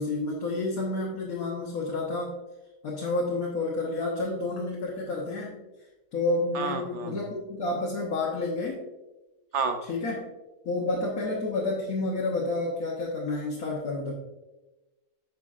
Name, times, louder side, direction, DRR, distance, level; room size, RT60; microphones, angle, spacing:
voice 1, 0.0-2.4 2.8-5.6 6.1-8.8 9.9-10.3 10.6-14.1, left 2 dB, 80° left, -3 dB, 1.6 m, -30 dB
voice 2, 6.5-7.2 9.5-9.8, right 5 dB, 60° right, 7 dB, 1.0 m, -30 dB
10.0 x 5.8 x 2.5 m, 1.1 s
omnidirectional pair, 1.5 m